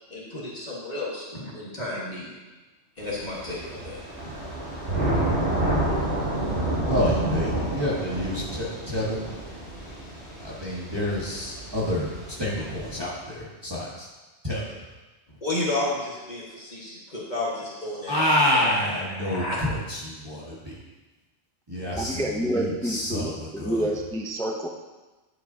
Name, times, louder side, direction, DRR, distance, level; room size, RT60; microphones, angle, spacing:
voice 1, 0.1-2.3 3.0-4.3 15.4-19.6, left 2 dB, 40° left, -6 dB, 1.6 m, -32 dB
Thunder / Rain, 3.0-12.9, right 1 dB, 60° right, 3.5 m, -29 dB
voice 2, 6.9-9.2 10.4-12.1 12.4-14.1 14.4-14.8 18.1-20.8 21.7-23.9, left 1 dB, 20° right, -6 dB, 1.3 m, -28 dB
voice 3, 22.0-24.7, right 1 dB, 5° left, 2 dB, 0.3 m, -28 dB
9.9 x 7.8 x 2.8 m, 1.2 s
omnidirectional pair, 1.3 m